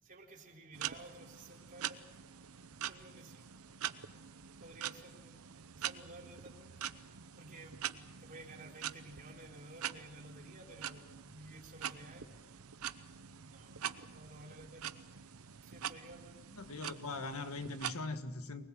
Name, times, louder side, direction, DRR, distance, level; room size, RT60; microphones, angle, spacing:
voice 1, 0.0-2.3 2.8-3.5 4.6-5.4 5.8-6.9 7.3-7.8 8.2-12.4 13.4-14.9 15.6-16.5, right 2 dB, 40° right, 3.9 m, -54 dB
sound 1, 0.7-17.9, right 9 dB, 80° right, 0.8 m, -45 dB
voice 2, 16.5-18.6, left 3 dB, 85° left, 1.7 m, -41 dB
24.0 x 20.0 x 7.7 m
head